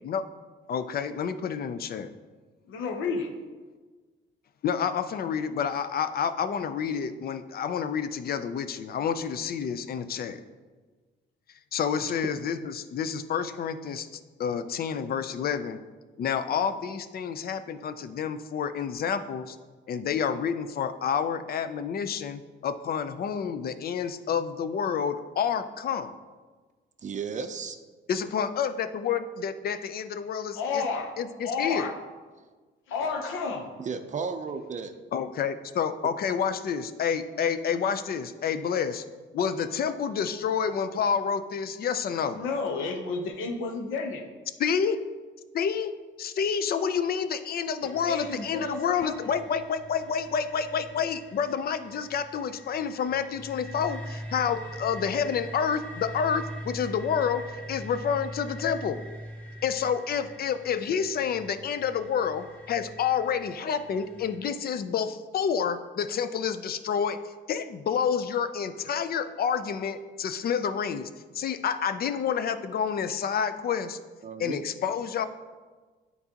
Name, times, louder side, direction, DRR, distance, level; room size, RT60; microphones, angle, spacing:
voice 1, 0.7-2.1 4.6-10.4 11.7-14.1 14.4-15.8 16.2-19.6 19.9-26.1 28.1-30.8 31.2-31.9 35.1-39.0 39.3-42.4 44.6-45.0 45.5-45.9 46.2-59.0 59.6-71.1 71.3-74.0 74.4-75.3, left 7 dB, 50° left, 11 dB, 0.5 m, -29 dB
voice 2, 2.7-3.3 30.5-31.2 31.4-32.0 32.9-33.7 42.3-44.3 47.8-49.3, left 4 dB, 90° left, 5 dB, 0.8 m, -31 dB
voice 3, 27.0-27.8 33.8-34.9 51.0-51.1 74.2-74.6, right 5 dB, 40° right, 8 dB, 0.5 m, -34 dB
sound 1, 47.8-64.4, equal, 10° left, 1.5 m, -43 dB
9.4 x 4.0 x 2.9 m, 1.4 s
cardioid pair, 90°, 20 cm